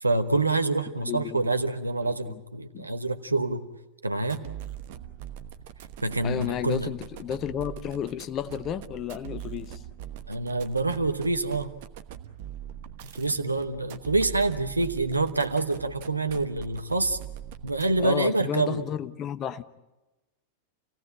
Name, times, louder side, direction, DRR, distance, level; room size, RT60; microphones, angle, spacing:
voice 1, 0.0-3.7 4.0-4.4 6.0-6.9 10.3-11.7 13.1-17.2 17.6-18.8, right 2 dB, 80° right, 9 dB, 1.1 m, -26 dB
voice 2, 1.0-1.5 2.0-2.4 2.7-2.9 6.2-9.8 18.0-19.6, left 9 dB, 30° left, 12 dB, 0.9 m, -32 dB
sound 1, 4.2-18.2, right 10 dB, 50° right, 1.1 m, -42 dB
29.0 x 17.0 x 8.6 m, 1.1 s
figure-of-eight pair, 90°, 0 cm